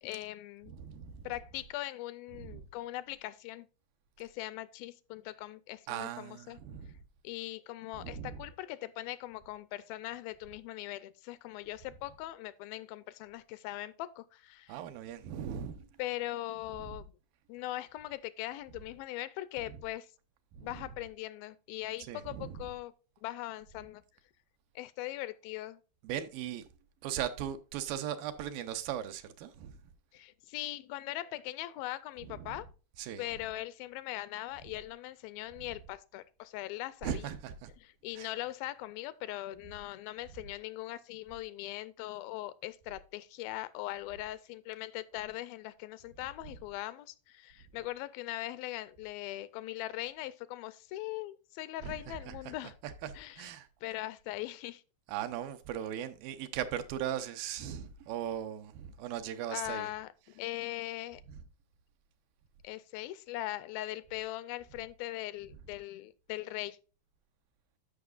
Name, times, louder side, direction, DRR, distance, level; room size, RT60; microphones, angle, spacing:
voice 1, 0.0-0.7 1.2-3.7 4.2-6.6 7.2-14.8 16.0-17.1 17.5-20.1 20.6-22.9 23.2-24.0 24.8-25.8 30.1-32.7 33.2-37.3 37.8-52.7 53.2-53.5 53.8-54.8 59.5-61.2 62.6-66.8, left 16 dB, 85° left, 2.3 m, -40 dB
voice 2, 0.7-1.3 2.3-2.7 5.9-7.0 7.9-8.4 14.7-15.9 16.8-16.9 20.5-20.8 22.0-22.7 26.0-26.7 27.0-29.8 32.2-32.6 33.0-33.2 37.0-37.7 38.2-38.3 51.8-52.5 52.8-53.7 55.1-59.9, right 10 dB, 80° right, 2.4 m, -39 dB
13.0 x 5.7 x 2.4 m
omnidirectional pair, 4.2 m